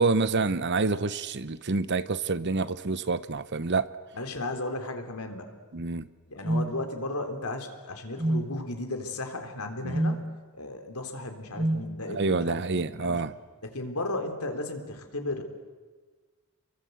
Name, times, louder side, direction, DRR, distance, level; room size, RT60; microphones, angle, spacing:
voice 1, 0.0-3.9 5.7-6.1 9.8-10.0 12.1-13.3, right 3 dB, 50° right, 15 dB, 0.9 m, -27 dB
voice 2, 4.1-5.5 6.3-10.2 10.5-13.2 13.6-15.4, left 2 dB, 80° left, 5 dB, 3.5 m, -35 dB
sound 1, 6.4-6.7 8.2-8.5 9.9-10.2 11.6-11.9, right 1 dB, 25° right, 1.4 m, -26 dB
29.0 x 23.0 x 8.0 m, 1.4 s
head